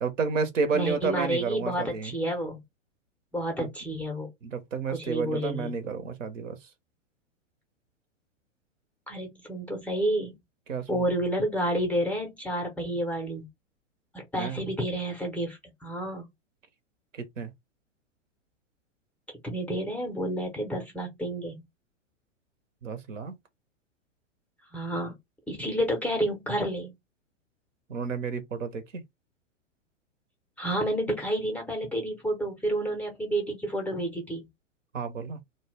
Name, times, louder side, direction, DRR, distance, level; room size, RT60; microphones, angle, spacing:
voice 1, 0.0-2.1 3.6-3.7 4.4-6.6 10.7-11.1 14.4-14.6 17.2-17.5 22.8-23.4 27.9-28.8 34.9-35.4, right 5 dB, 80° right, 0.8 m, -31 dB
voice 2, 0.7-2.6 3.3-4.3 4.9-5.7 9.1-10.3 10.9-13.4 14.1-16.3 19.4-21.6 24.7-25.2 25.5-26.9 30.6-34.5, right 1 dB, 5° left, 0.4 m, -30 dB
2.1 x 2.0 x 3.2 m
hypercardioid pair, 110°, 38 cm